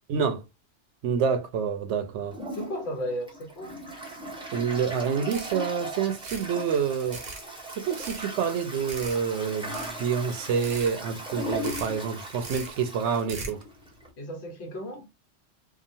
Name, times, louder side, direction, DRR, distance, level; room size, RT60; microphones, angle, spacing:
voice 1, 0.1-0.4 1.0-2.4 4.5-7.2 7.7-13.6, right 6 dB, 85° right, 0.9 m, -28 dB
Toilet flush, 2.3-14.1, right 1 dB, 5° right, 0.7 m, -38 dB
voice 2, 2.5-3.7 14.2-15.1, equal, 70° left, 1.2 m, -34 dB
sound 1, 5.0-5.1 5.3-5.7 6.1-6.5 6.9-7.4 7.8-8.3 8.9-9.2 9.6-10.1 10.5-10.9 11.4-11.9 12.3-12.7 13.1-13.6, right 3 dB, 45° right, 0.7 m, -40 dB
2.8 x 2.3 x 2.6 m
omnidirectional pair, 1.2 m